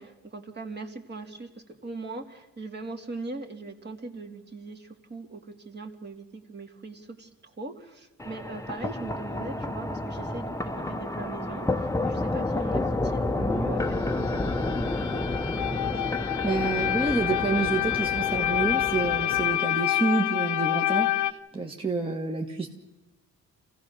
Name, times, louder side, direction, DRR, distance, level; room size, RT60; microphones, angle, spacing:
voice 1, 0.0-15.4, right 3 dB, 35° right, 4 dB, 2.5 m, -40 dB
sound 1, 8.2-19.6, left 2 dB, 10° left, 1.0 m, -30 dB
sound 2, 13.9-21.3, left 13 dB, 80° left, 0.9 m, -28 dB
voice 2, 16.4-22.7, right 3 dB, 20° right, 2 dB, 1.6 m, -28 dB
26.0 x 16.5 x 6.5 m, 1.0 s
cardioid pair, 90°, 30 cm